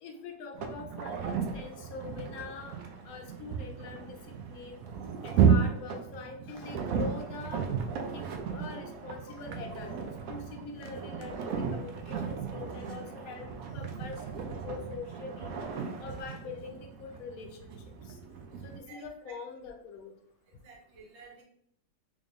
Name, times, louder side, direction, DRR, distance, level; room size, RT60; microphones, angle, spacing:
voice 1, 0.0-2.8 3.0-4.8 5.2-7.6 8.1-10.0 10.3-13.5 13.7-15.5 16.0-17.8 18.1-18.2 18.6-20.1, left 4 dB, 65° left, 3 dB, 1.0 m, -43 dB
sound 1, 0.5-18.8, right 6 dB, 70° right, 0.9 m, -33 dB
voice 2, 18.9-19.4 20.5-21.4, right 4 dB, 50° right, -2 dB, 1.1 m, -53 dB
3.5 x 2.5 x 3.4 m, 0.69 s
omnidirectional pair, 1.8 m